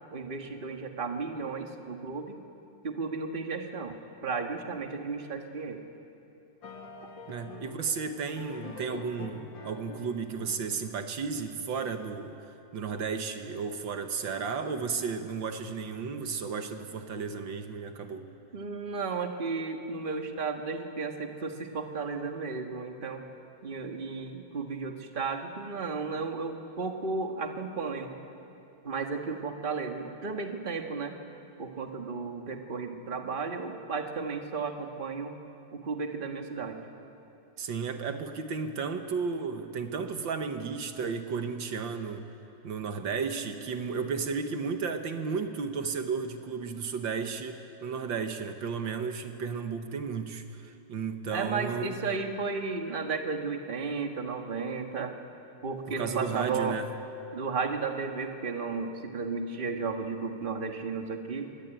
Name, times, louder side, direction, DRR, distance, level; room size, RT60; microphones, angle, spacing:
voice 1, 0.1-2.4 2.8-4.0 4.2-5.8 18.5-23.2 23.6-28.1 28.8-31.2 31.6-35.3 35.7-36.9 51.3-55.1 55.6-56.8 57.3-61.5, right 4 dB, 30° right, 4 dB, 1.7 m, -34 dB
sound 1, 6.6-11.9, left 4 dB, 75° left, 2.9 m, -46 dB
voice 2, 7.3-12.4 12.7-18.3 37.6-42.3 42.6-52.0 56.0-56.9, right 5 dB, 75° right, 7 dB, 2.0 m, -33 dB
24.5 x 21.5 x 9.2 m, 2.8 s
omnidirectional pair, 2.1 m